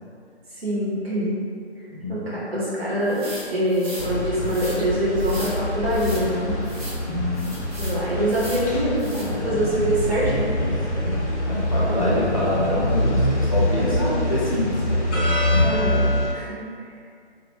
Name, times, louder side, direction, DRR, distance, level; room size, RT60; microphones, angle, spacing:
voice 1, 0.5-1.3 2.1-3.2 3.5-6.5 7.8-10.5 13.8-14.1 15.6-16.0 16.3-16.6, right 1 dB, 60° right, -8 dB, 1.0 m, -24 dB
voice 2, 2.0-2.4 7.0-7.6 9.3-9.8 10.6-15.7, left 1 dB, 30° left, -8 dB, 0.5 m, -27 dB
sound 1, 3.1-4.1 4.4-4.8 5.2-5.6 5.9-6.2 6.6-7.0 7.3-8.0 8.3-8.7 9.0-9.3, equal, 35° right, 1.0 m, -37 dB
sound 2, 4.0-16.3, left 1 dB, 85° left, 0.7 m, -25 dB
2.3 x 2.1 x 3.1 m, 2.2 s
figure-of-eight pair, 160°, 34 cm